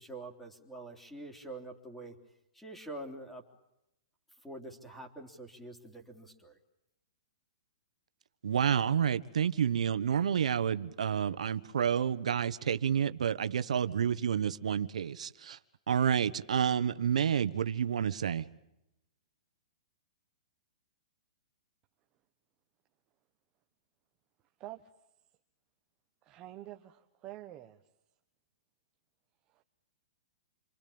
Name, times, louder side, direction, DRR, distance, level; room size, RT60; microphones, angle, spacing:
voice 1, 0.0-2.1 2.5-3.4 4.4-6.6, right 2 dB, 5° left, 3.5 m, -46 dB
voice 2, 8.4-15.6 15.9-18.4, right 8 dB, 85° right, 1.3 m, -29 dB
voice 3, 26.2-27.8 29.5-29.6, right 15 dB, 25° right, 1.3 m, -47 dB
28.0 x 24.5 x 8.7 m
hypercardioid pair, 155°, 4 cm